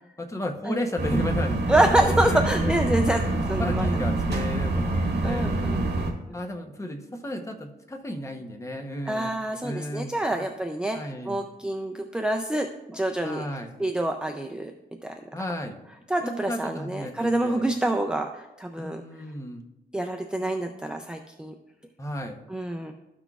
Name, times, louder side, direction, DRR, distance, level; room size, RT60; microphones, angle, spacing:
voice 1, 0.2-2.8 3.1-5.8 6.3-9.3 9.6-10.1 10.9-11.4 13.2-13.8 15.3-15.8 16.2-17.6 18.8-19.6 22.0-22.4, left 1 dB, 15° left, 3 dB, 0.8 m, -33 dB
sound 1, 1.0-6.1, right 2 dB, 75° right, 1.3 m, -26 dB
voice 2, 1.7-3.2 3.5-4.1 5.2-6.4 9.1-13.5 13.8-14.7 15.0-15.1 16.1-19.0 19.9-21.5 22.5-22.9, right 1 dB, 5° right, 4 dB, 0.4 m, -27 dB
13.0 x 6.0 x 2.4 m, 0.94 s
wide cardioid pair, 120°, 17 cm